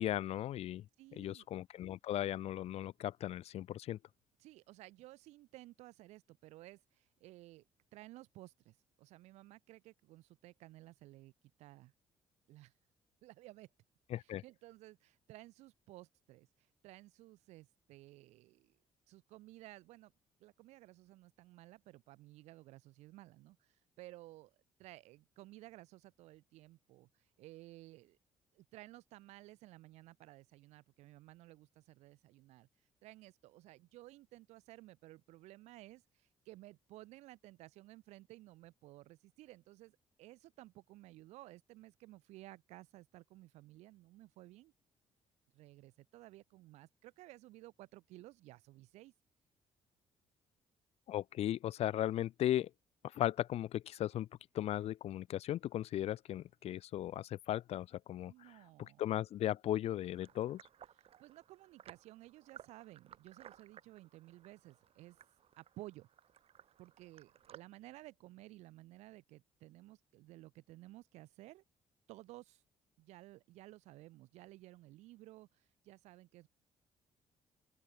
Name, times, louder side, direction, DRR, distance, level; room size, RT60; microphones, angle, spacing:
voice 1, 0.0-0.8 1.2-4.0 14.1-14.4 51.1-52.7 53.1-54.3 54.5-58.3 58.8-60.6, left 12 dB, 70° left, 0.5 m, -37 dB
voice 2, 1.0-1.5 4.4-7.6 7.9-11.3 11.6-11.9 12.5-12.7 13.2-13.7 14.2-18.8 19.1-20.1 20.4-27.1 27.4-28.2 28.5-32.7 33.0-44.7 45.5-49.1 58.3-59.0 61.0-65.2 65.6-66.1 66.8-71.6 72.1-72.6 73.0-76.5, right 17 dB, 90° right, 1.4 m, -56 dB
sound 1, 60.0-67.6, right 9 dB, 60° right, 1.5 m, -59 dB
open air
cardioid pair, 80°, 11 cm